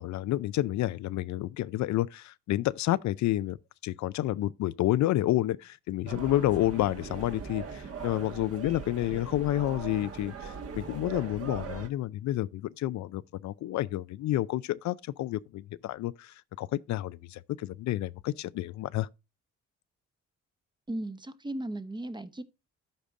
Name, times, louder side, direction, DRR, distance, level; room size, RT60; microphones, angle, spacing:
voice 1, 0.0-3.6 3.8-19.1, left 14 dB, 70° left, 0.4 m, -30 dB
sound 1, 6.1-11.9, right 5 dB, 50° right, 1.6 m, -40 dB
voice 2, 20.9-22.4, right 1 dB, 15° right, 0.9 m, -36 dB
13.5 x 5.0 x 2.5 m
cardioid pair, 90°, 30 cm